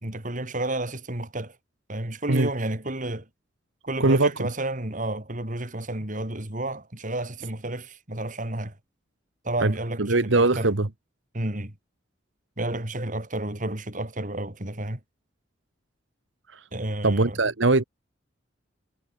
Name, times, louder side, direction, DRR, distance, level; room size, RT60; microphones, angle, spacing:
voice 1, 0.0-1.6 1.9-3.3 3.8-8.8 9.4-10.7 11.3-11.7 12.6-15.0 16.7-17.4, right 1 dB, 40° right, 3.5 m, -31 dB
voice 2, 4.0-4.5 9.6-9.7 10.0-10.9 16.5-16.7 17.0-17.8, right 2 dB, 70° right, 1.4 m, -21 dB
head